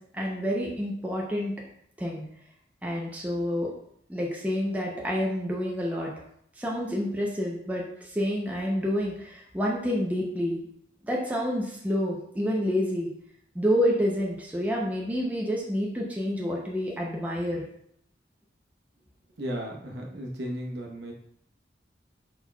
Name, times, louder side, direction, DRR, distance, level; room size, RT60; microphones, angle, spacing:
voice 1, 0.1-1.5 2.0-2.2 2.8-3.7 4.1-6.1 6.6-10.6 11.0-13.1 13.5-17.6, equal, 10° right, -3 dB, 0.6 m, -28 dB
voice 2, 19.4-21.1, equal, 75° right, 0 dB, 0.8 m, -35 dB
4.3 x 4.1 x 2.3 m, 0.70 s
head